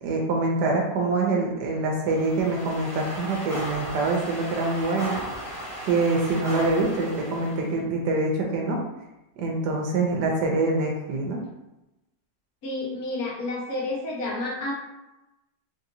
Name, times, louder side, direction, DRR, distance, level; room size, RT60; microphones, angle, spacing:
voice 1, 0.0-5.2 5.8-8.8 9.4-11.4, right 3 dB, 90° right, -1 dB, 1.2 m, -25 dB
sound 1, 2.0-7.7, equal, ahead, 0.8 m, -36 dB
voice 2, 12.6-14.7, left 2 dB, 65° left, -3 dB, 1.3 m, -30 dB
3.5 x 2.7 x 2.6 m, 0.98 s
omnidirectional pair, 1.7 m